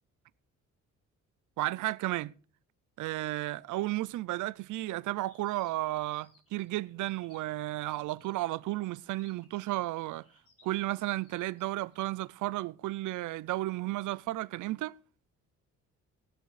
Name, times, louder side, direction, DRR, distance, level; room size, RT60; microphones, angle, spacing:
voice 1, 1.6-2.3 3.0-10.2 10.6-14.9, right 17 dB, 80° right, 0.6 m, -33 dB
sound 1, 5.2-12.3, left 3 dB, 50° left, 5.2 m, -65 dB
19.0 x 6.6 x 4.9 m
cardioid pair, 90°, 30 cm